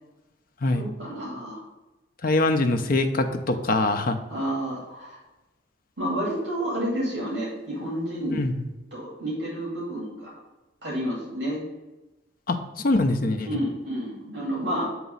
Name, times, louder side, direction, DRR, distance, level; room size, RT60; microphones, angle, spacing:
voice 1, 0.7-1.6 4.3-5.2 6.0-8.5 8.9-10.3 10.8-11.6 13.4-14.9, equal, 65° right, -5 dB, 2.3 m, -30 dB
voice 2, 2.2-4.2 8.3-8.5 12.5-12.6 12.8-13.5, left 2 dB, 50° left, 7 dB, 0.7 m, -23 dB
8.0 x 3.0 x 5.4 m, 1.1 s
head